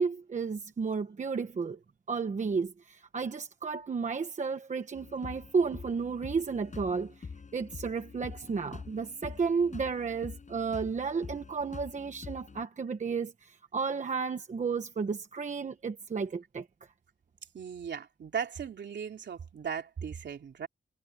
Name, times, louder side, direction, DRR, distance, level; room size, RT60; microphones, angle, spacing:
voice 1, 0.0-1.8 2.1-7.3 7.5-16.7, right 5 dB, 35° right, 1.1 m, -32 dB
sound 1, 4.9-12.7, left 5 dB, 40° left, 6.6 m, -46 dB
voice 2, 17.5-20.7, right 7 dB, 60° right, 3.4 m, -37 dB
wide cardioid pair, 175°, 20 cm